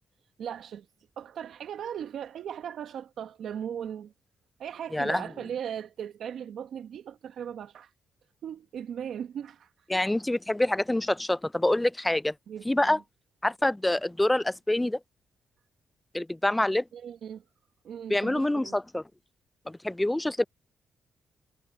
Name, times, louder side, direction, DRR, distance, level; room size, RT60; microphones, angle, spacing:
voice 1, 0.4-0.9 1.2-4.1 4.6-7.9 8.4-9.7 12.5-13.0 16.9-17.4 17.8-18.8, right 9 dB, 75° right, 1.4 m, -38 dB
voice 2, 4.9-5.2 9.9-12.3 12.7-13.0 13.4-15.0 16.1-16.8 18.1-19.0 19.7-20.4, left 1 dB, 10° left, 0.4 m, -26 dB
cardioid pair, 65°, 0 cm